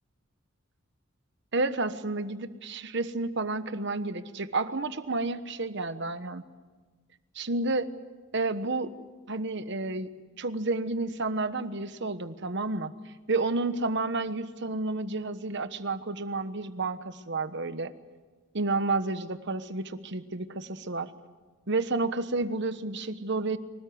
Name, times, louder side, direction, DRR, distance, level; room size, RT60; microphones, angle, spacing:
voice 1, 1.5-6.4 7.3-7.9 8.3-8.9 9.3-10.1 10.4-12.9 13.3-17.9 18.5-21.1 21.7-23.6, right 3 dB, 60° right, 11 dB, 1.3 m, -30 dB
25.5 x 18.0 x 9.5 m, 1.3 s
head